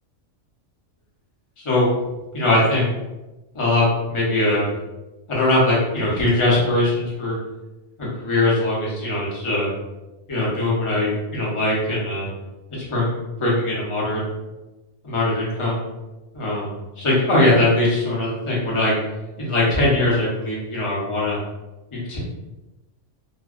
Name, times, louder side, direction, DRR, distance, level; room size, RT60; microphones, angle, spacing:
voice 1, 1.6-1.9 2.3-2.8 3.5-4.7 5.3-7.4 8.0-9.7 10.3-12.3 12.7-14.2 15.0-15.8 16.3-18.9 19.4-21.4 21.9-22.2, left 1 dB, 30° left, -6 dB, 0.7 m, -21 dB
2.5 x 2.2 x 2.3 m, 1.1 s
omnidirectional pair, 1.3 m